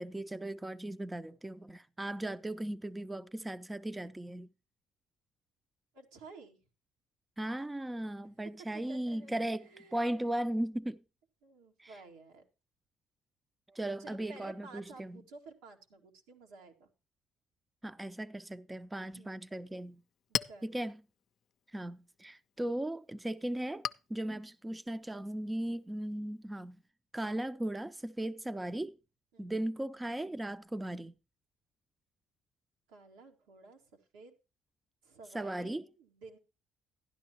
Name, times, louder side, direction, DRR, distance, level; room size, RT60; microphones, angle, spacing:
voice 1, 0.0-4.5 7.4-11.0 11.8-11.9 13.7-15.2 17.8-20.0 20.6-21.0 21.7-26.8 27.1-28.9 29.4-31.1 35.3-35.9, right 1 dB, 15° right, 0.6 m, -37 dB
voice 2, 5.9-6.6 8.2-8.3 8.7-10.4 11.4-12.4 14.0-16.9 19.0-19.4 20.3-20.8 29.3-29.7 32.9-34.3 35.0-36.4, right 3 dB, 90° right, 2.0 m, -53 dB
Chink clink, 19.8-26.9, left 8 dB, 60° left, 0.5 m, -44 dB
12.0 x 11.0 x 2.9 m
supercardioid pair, 60°, 0 cm